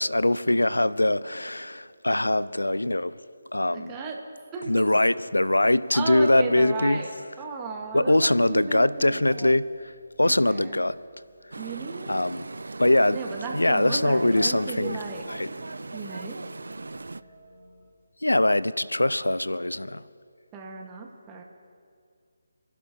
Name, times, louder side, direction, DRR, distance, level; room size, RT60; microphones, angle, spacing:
voice 1, 0.0-3.2 3.5-3.9 4.7-7.0 7.9-11.0 12.1-12.5 12.8-13.2 13.5-15.0 15.3-15.5 18.2-20.0, left 1 dB, 85° left, 0.4 m, -22 dB
voice 2, 3.7-4.2 4.5-4.9 5.9-7.1 7.4-9.5 10.2-10.8 11.6-12.2 13.1-15.2 15.9-16.4 20.5-21.4, right 4 dB, 20° right, 1.3 m, -35 dB
sound 1, 7.8-17.9, left 1 dB, 25° left, 3.5 m, -57 dB
sound 2, 11.5-17.2, right 3 dB, 70° right, 0.4 m, -38 dB
29.0 x 11.5 x 2.8 m
figure-of-eight pair, 150°, 0 cm